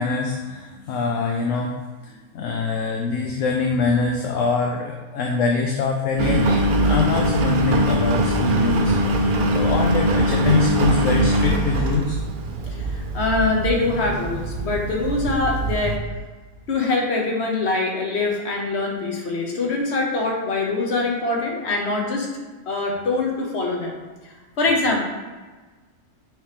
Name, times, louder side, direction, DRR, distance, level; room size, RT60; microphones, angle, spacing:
voice 1, 0.0-1.8 2.0-12.2, left 4 dB, 65° left, 1 dB, 1.0 m, -24 dB
Engine, 6.2-16.0, right 1 dB, 50° right, 0.6 m, -22 dB
voice 2, 12.8-16.0 16.7-22.3 22.7-24.0 24.3-25.0, left 3 dB, 50° left, 0 dB, 1.3 m, -23 dB
6.3 x 3.1 x 5.0 m, 1.3 s
omnidirectional pair, 1.5 m